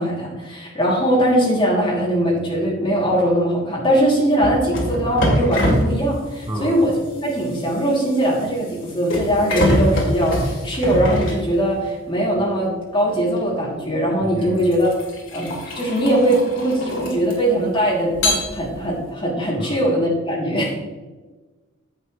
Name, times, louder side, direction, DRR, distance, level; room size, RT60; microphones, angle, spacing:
voice 1, 0.0-14.9 15.3-20.7, right 1 dB, 25° left, -5 dB, 3.0 m, -20 dB
sound 1, 4.4-12.0 13.4-13.6 14.2-17.6 18.1-19.0, left 1 dB, 65° left, 2.6 m, -24 dB
voice 2, 6.5-6.8 14.2-14.6 19.6-19.8 20.6-20.7, equal, 25° right, -1 dB, 1.3 m, -30 dB
11.0 x 7.9 x 3.3 m, 1.3 s
head